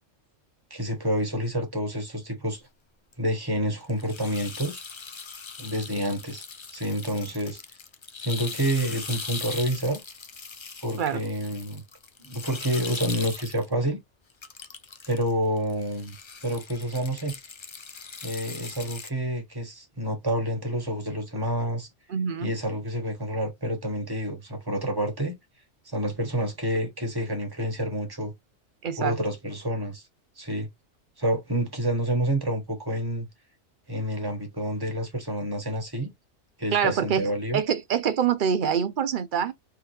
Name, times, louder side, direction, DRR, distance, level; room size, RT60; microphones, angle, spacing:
voice 1, 0.7-2.6 3.2-4.8 5.6-6.4 6.7-7.6 8.2-10.0 10.8-11.8 12.2-14.0 15.1-16.1 16.4-17.3 18.2-21.9 22.4-25.4 25.8-28.3 29.0-30.0 30.4-30.7 31.2-33.3 33.9-36.1 36.6-37.6, right 1 dB, 20° right, 1.4 m, -28 dB
sound 1, 3.1-3.3 3.8-13.7 14.3-15.3 15.6-19.1, left 5 dB, 50° left, 0.3 m, -40 dB
voice 2, 22.1-22.5 28.8-29.1 36.7-39.5, right 7 dB, 55° right, 0.6 m, -25 dB
3.5 x 3.4 x 3.1 m
omnidirectional pair, 1.3 m